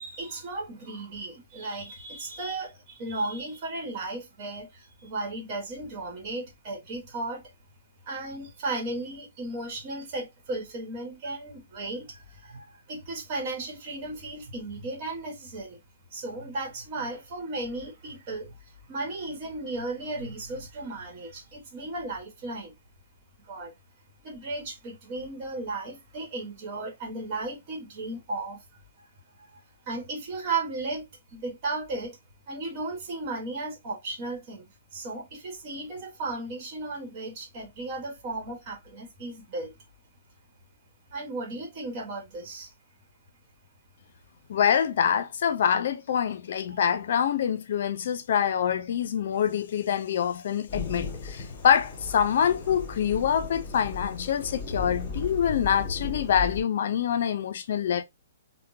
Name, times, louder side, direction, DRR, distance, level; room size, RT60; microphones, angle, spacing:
voice 1, 0.0-7.4 8.1-15.8 16.1-22.7 23.5-23.7 24.2-28.6 29.0-29.1 29.4-29.5 29.9-32.2 32.5-39.7 41.1-42.7 46.7-46.9, right 2 dB, 40° right, 1.2 m, -35 dB
voice 2, 44.5-58.0, left 8 dB, 60° left, 0.5 m, -25 dB
Thunderstorm / Rain, 50.7-56.6, left 4 dB, 25° left, 2.0 m, -36 dB
3.6 x 2.1 x 2.6 m
hypercardioid pair, 145°, 0 cm